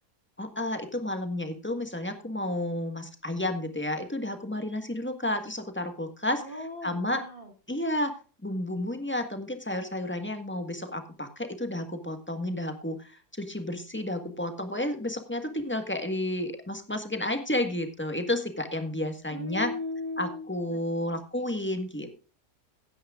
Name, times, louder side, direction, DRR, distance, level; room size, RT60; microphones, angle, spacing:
voice 1, 0.4-6.4 6.8-7.2 7.7-8.1 8.4-19.7 20.2-22.2, left 1 dB, 5° left, 7 dB, 1.4 m, -31 dB
voice 2, 6.4-7.5 19.3-21.5, left 2 dB, 35° right, 5 dB, 1.8 m, -38 dB
16.0 x 10.0 x 2.4 m, 0.36 s
omnidirectional pair, 1.7 m